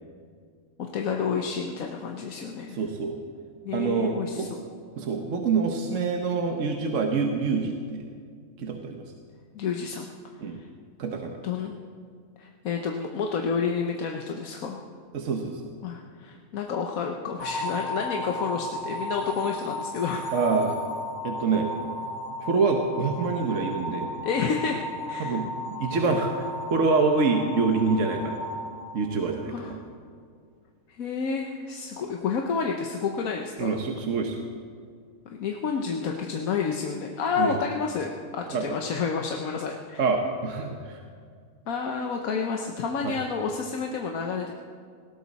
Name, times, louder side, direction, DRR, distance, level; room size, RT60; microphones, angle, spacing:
voice 1, 0.8-2.8 3.6-4.6 9.5-10.1 10.4-10.5 11.4-11.8 12.4-14.8 15.8-20.4 24.2-25.4 29.5-29.8 31.0-33.7 35.4-40.0 41.7-44.5, left 5 dB, 85° left, 2 dB, 1.4 m, -30 dB
voice 2, 2.7-3.2 3.7-4.5 5.0-8.1 8.6-9.0 10.4-10.6 11.0-11.4 15.1-15.7 20.3-20.8 21.2-21.7 22.4-24.1 25.2-28.4 28.9-29.8 33.6-34.4 37.4-37.6 38.5-38.7 40.0-41.0 43.0-43.1, right 4 dB, 65° right, 3 dB, 1.4 m, -26 dB
sound 1, 17.4-29.6, left 1 dB, 35° left, 4.3 m, -35 dB
19.0 x 17.0 x 4.1 m, 2.1 s
omnidirectional pair, 1.4 m